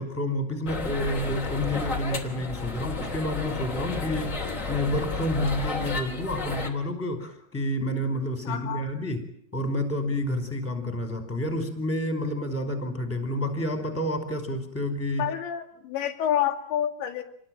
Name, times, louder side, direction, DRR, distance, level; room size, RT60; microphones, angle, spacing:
voice 1, 0.0-9.2 9.5-15.3, left 1 dB, 5° left, 7 dB, 4.0 m, -29 dB
sound 1, 0.7-6.7, left 4 dB, 20° left, 2.6 m, -32 dB
voice 2, 8.4-8.9 10.7-10.9 15.2-17.2, left 10 dB, 90° left, 1 dB, 4.7 m, -29 dB
27.5 x 20.0 x 9.0 m, 0.68 s
omnidirectional pair, 5.0 m